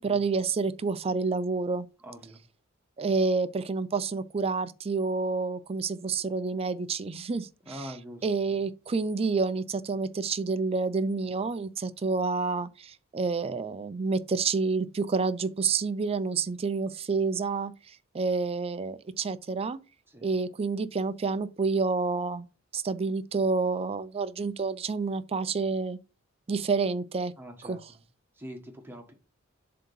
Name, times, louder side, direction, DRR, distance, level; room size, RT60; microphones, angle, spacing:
voice 1, 0.0-1.9 3.0-7.9 8.2-19.8 20.2-22.5 22.7-26.0 26.5-27.3 27.6-27.9, right 4 dB, 30° right, 0.4 m, -29 dB
voice 2, 2.0-2.4 7.6-8.2 20.1-20.3 27.4-28.0 28.4-29.1, equal, 10° right, 1.2 m, -43 dB
7.2 x 2.9 x 5.3 m
head